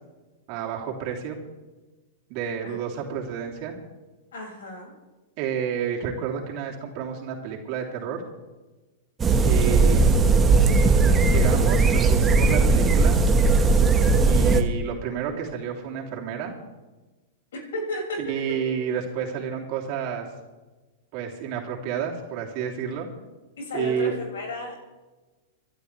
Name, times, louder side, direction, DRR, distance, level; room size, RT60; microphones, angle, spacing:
voice 1, 0.5-1.4 2.3-3.7 5.4-8.2 9.4-10.2 11.3-13.2 14.2-16.5 18.2-20.3 21.1-23.1 23.7-24.2, right 7 dB, 50° right, -1 dB, 3.3 m, -30 dB
voice 2, 4.3-4.9 17.5-18.6 23.6-24.8, left 1 dB, 75° left, -1 dB, 6.1 m, -33 dB
sound 1, 9.2-14.6, right 3 dB, 20° right, 1.5 m, -18 dB
26.5 x 12.0 x 3.4 m, 1.2 s
hypercardioid pair, 110°, 0 cm